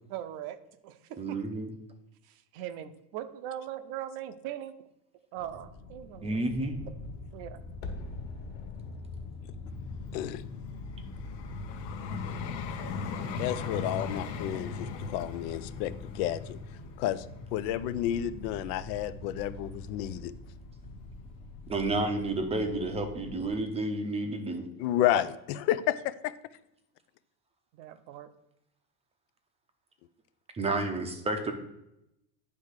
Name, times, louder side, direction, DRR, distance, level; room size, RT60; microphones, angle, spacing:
voice 1, 0.1-0.6 0.8-1.4 2.3-4.8 5.3-6.4 7.3-7.6 25.1-25.2 27.7-28.3, right 11 dB, 50° right, 11 dB, 0.7 m, -40 dB
voice 2, 1.2-1.7 6.2-6.8 21.7-24.7 30.5-31.5, right 2 dB, 15° right, 6 dB, 0.6 m, -30 dB
sound 1, 5.4-23.5, left 3 dB, 25° left, 1.0 m, -44 dB
sound 2, 7.8-12.8 13.0-13.1, left 2 dB, 50° left, 1.5 m, -47 dB
Vehicle, 9.7-18.8 19.4-19.6, left 5 dB, 90° left, 1.1 m, -39 dB
voice 3, 10.1-10.4 13.4-16.6 17.0-17.3 17.5-20.3 24.8-26.3, left 12 dB, 70° left, 15 dB, 0.6 m, -31 dB
9.8 x 3.5 x 6.5 m, 0.85 s
cardioid pair, 155°, 50 cm